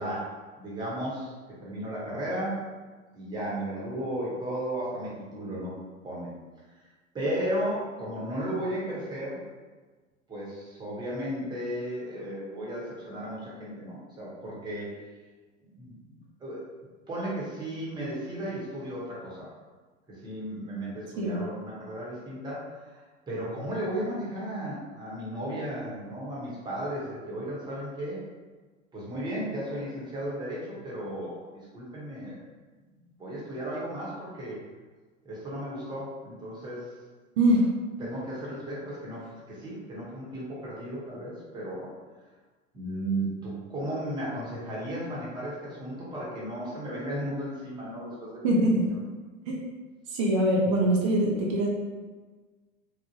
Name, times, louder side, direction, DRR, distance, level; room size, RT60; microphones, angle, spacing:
voice 1, 0.0-1.3 1.6-2.7 3.1-5.8 6.0-6.3 7.1-9.5 10.3-15.1 15.6-16.6 17.1-19.5 20.1-23.0 23.3-28.2 28.9-31.5 31.7-32.4 33.2-34.6 35.2-36.9 38.0-41.9 42.7-48.6, right 1 dB, 10° right, -7 dB, 0.8 m, -35 dB
voice 2, 37.4-37.7 48.4-48.9 49.5-49.6 50.1-51.7, right 1 dB, 25° right, -2 dB, 0.3 m, -23 dB
3.1 x 2.1 x 2.7 m, 1.4 s
figure-of-eight pair, 85°, 40 cm